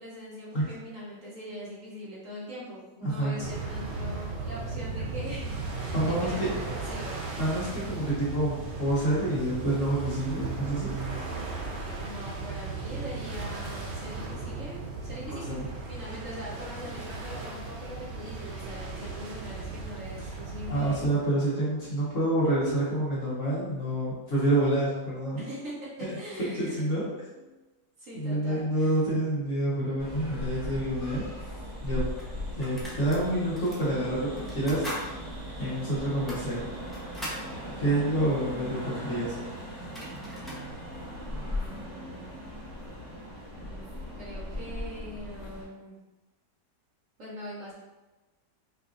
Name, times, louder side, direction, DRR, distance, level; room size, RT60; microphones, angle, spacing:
voice 1, 0.0-5.9 6.2-7.4 11.6-15.6 15.9-21.2 25.4-26.9 28.0-28.9 41.4-42.4 43.6-43.9 44.2-46.0 47.2-47.8, equal, 60° right, -6 dB, 1.1 m, -42 dB
voice 2, 3.0-3.3 5.9-6.5 7.4-10.9 15.3-15.7 20.7-25.4 26.0-26.1 26.5-27.0 28.1-31.2 31.8-32.1 32.6-35.1 35.6-36.7 37.8-39.4, right 1 dB, 50° left, -8 dB, 1.4 m, -28 dB
sound 1, 3.4-21.0, right 3 dB, 75° right, 0.6 m, -36 dB
sound 2, 30.0-45.6, equal, 25° right, 1.1 m, -38 dB
sound 3, 32.2-33.2 33.5-33.8 34.4-35.1 35.4-35.5 36.1-37.5 39.4-39.5 39.7-40.6, equal, ahead, 0.3 m, -40 dB
4.7 x 2.5 x 2.5 m, 1.1 s
omnidirectional pair, 1.8 m